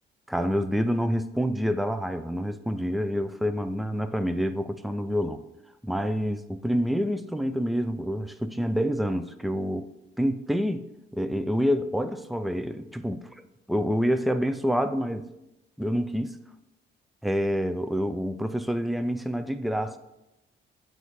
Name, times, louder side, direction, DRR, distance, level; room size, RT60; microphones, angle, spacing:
voice 1, 0.3-5.4 5.8-9.9 10.2-10.9 11.1-13.2 13.7-15.3 15.8-16.4 17.2-20.0, equal, ahead, 0.3 m, -27 dB
7.9 x 2.6 x 4.7 m
cardioid pair, 90°, 20 cm